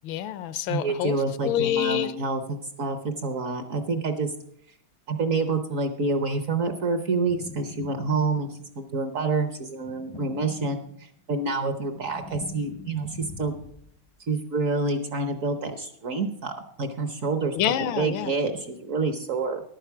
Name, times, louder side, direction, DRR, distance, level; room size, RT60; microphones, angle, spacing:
voice 1, 0.0-1.2 1.4-2.1 17.5-18.3, left 11 dB, 80° left, 15 dB, 1.4 m, -27 dB
voice 2, 0.7-4.3 5.1-8.5 8.8-10.8 11.3-13.6 14.3-16.5 16.8-17.6 18.0-19.6, right 3 dB, 55° right, 8 dB, 1.0 m, -27 dB
sound 1, 7.2-8.7 9.7-11.2 11.6-14.0, left 3 dB, 40° left, 0.4 m, -43 dB
11.5 x 9.1 x 5.9 m, 0.66 s
omnidirectional pair, 2.2 m